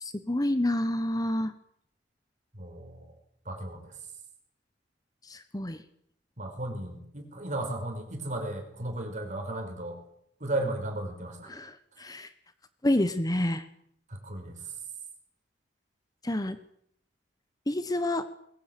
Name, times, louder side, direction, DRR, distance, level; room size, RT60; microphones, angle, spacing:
voice 1, 0.0-1.5 5.2-5.8 11.5-12.3 12.8-13.7 16.2-16.6 17.7-18.2, left 1 dB, 20° left, 12 dB, 1.2 m, -28 dB
voice 2, 2.5-3.0 3.4-3.9 6.4-10.0 10.4-11.5 14.1-14.5, right 1 dB, 45° right, 4 dB, 6.1 m, -35 dB
22.0 x 19.0 x 9.3 m, 0.71 s
head